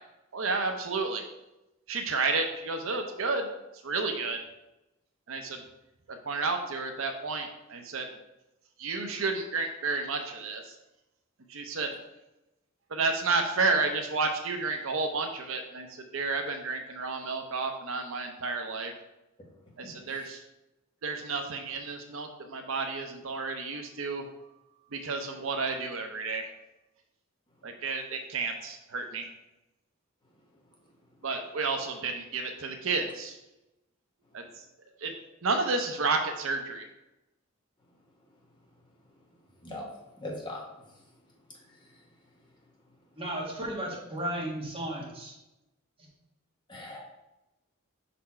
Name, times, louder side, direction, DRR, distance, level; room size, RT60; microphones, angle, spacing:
voice 1, 0.3-1.2 1.9-3.5 3.8-4.4 5.3-5.6 6.3-8.1 8.8-10.7 11.5-11.9 12.9-15.9 16.1-18.9 19.8-20.4 21.0-24.2 24.9-26.5 27.6-29.3 31.2-33.4 34.3-34.4 35.0-35.1 35.4-36.9, right 3 dB, 70° right, 5 dB, 0.6 m, -31 dB
voice 2, 40.2-40.6 41.7-41.9 46.7-47.0, left 1 dB, 25° left, -2 dB, 1.2 m, -40 dB
voice 3, 43.2-45.3, right 1 dB, 25° right, -3 dB, 1.5 m, -34 dB
5.6 x 4.2 x 4.2 m, 0.94 s
head